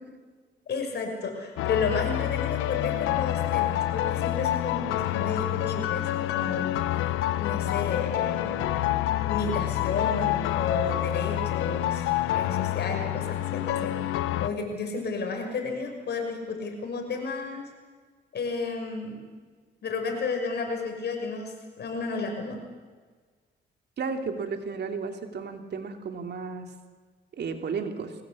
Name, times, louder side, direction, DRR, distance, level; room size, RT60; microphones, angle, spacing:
voice 1, 0.7-6.8 7.4-8.7 9.3-12.1 12.3-13.9 14.4-17.7 18.3-19.2 19.8-22.6, left 4 dB, 55° left, 3 dB, 6.2 m, -32 dB
sound 1, 1.6-14.5, left 14 dB, 90° left, 1.0 m, -27 dB
voice 2, 24.0-26.7 27.4-28.1, right 5 dB, 60° right, 6 dB, 2.9 m, -33 dB
22.5 x 19.0 x 8.4 m, 1.5 s
cardioid pair, 90°, 20 cm